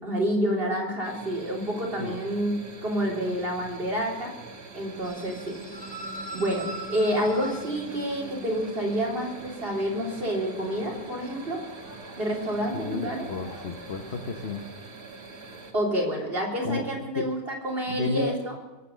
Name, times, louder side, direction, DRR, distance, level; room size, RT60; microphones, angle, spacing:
voice 1, 0.0-4.3 4.7-5.6 6.3-11.6 12.2-13.3 15.7-18.6, equal, 30° right, -2 dB, 3.7 m, -28 dB
sound 1, 1.0-15.7, right 4 dB, 55° right, 2.5 m, -44 dB
sound 2, 5.0-14.7, right 1 dB, 70° left, 6.9 m, -44 dB
voice 2, 12.7-14.6 16.6-17.3 17.9-18.6, left 4 dB, 45° left, 5 dB, 1.0 m, -32 dB
22.0 x 8.4 x 6.7 m, 1.2 s
omnidirectional pair, 1.9 m